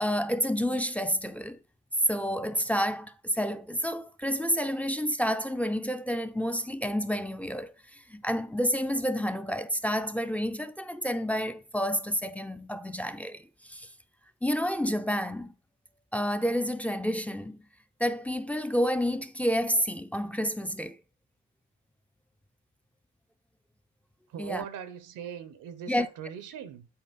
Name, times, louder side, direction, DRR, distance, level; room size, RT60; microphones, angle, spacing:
voice 1, 0.0-1.6 2.0-13.9 14.4-15.5 16.1-17.6 18.0-21.0 24.4-24.6 25.9-26.1, equal, 5° left, 0.6 m, -29 dB
voice 2, 24.3-26.9, right 8 dB, 85° right, 1.1 m, -40 dB
8.6 x 4.6 x 4.2 m
cardioid pair, 90°, 30 cm